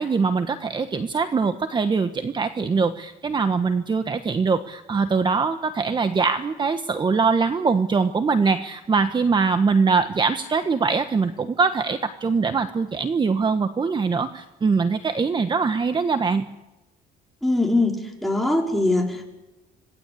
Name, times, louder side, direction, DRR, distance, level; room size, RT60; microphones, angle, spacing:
voice 1, 0.0-16.5, right 4 dB, 25° right, 9 dB, 1.3 m, -22 dB
voice 2, 17.4-19.3, left 2 dB, ahead, 0 dB, 5.1 m, -22 dB
26.5 x 18.5 x 8.5 m, 1.0 s
cardioid pair, 110°, 17 cm